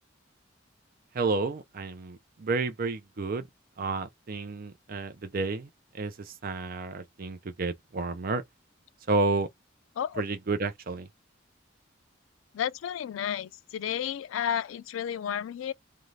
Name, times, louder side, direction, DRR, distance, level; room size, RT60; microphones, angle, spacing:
voice 1, 1.1-3.4 3.8-5.7 5.9-8.4 9.1-9.5 10.2-11.1, right 3 dB, 50° right, 0.5 m, -31 dB
voice 2, 12.5-15.7, left 9 dB, 85° left, 0.3 m, -32 dB
2.5 x 2.3 x 3.1 m
head